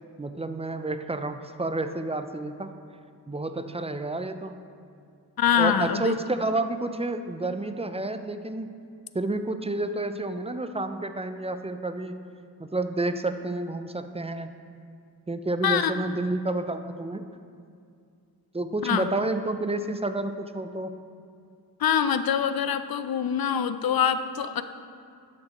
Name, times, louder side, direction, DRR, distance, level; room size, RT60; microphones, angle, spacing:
voice 1, 0.2-2.8 3.3-4.6 5.6-8.7 9.1-12.3 12.6-14.5 15.3-17.2 18.5-20.9, right 2 dB, 15° right, 9 dB, 0.4 m, -30 dB
voice 2, 5.4-6.2 15.6-16.1 18.8-19.1 21.8-24.6, left 8 dB, 70° left, 11 dB, 0.5 m, -24 dB
11.5 x 6.4 x 3.0 m, 2.3 s
cardioid pair, 50°, 38 cm